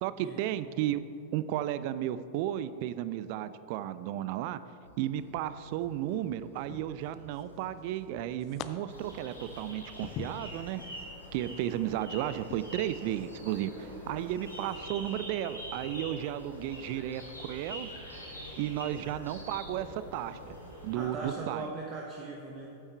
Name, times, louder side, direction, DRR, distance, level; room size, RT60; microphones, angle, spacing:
voice 1, 0.0-1.0 1.3-4.6 5.0-10.8 11.3-17.9 18.6-20.5 20.8-21.7, right 12 dB, 45° right, 14 dB, 0.4 m, -34 dB
sound 1, 4.8-20.7, equal, 80° right, 1.4 m, -56 dB
sound 2, 5.5-6.0 6.7-7.6 7.9-8.7 9.1-11.0 11.5-11.7 12.4-12.6, left 10 dB, 35° left, 0.4 m, -44 dB
sound 3, 8.9-21.1, equal, 85° left, 1.9 m, -45 dB
voice 2, 20.9-22.8, right 3 dB, 30° right, -2 dB, 1.1 m, -39 dB
8.9 x 8.0 x 4.5 m, 2.9 s
figure-of-eight pair, 90°, 0 cm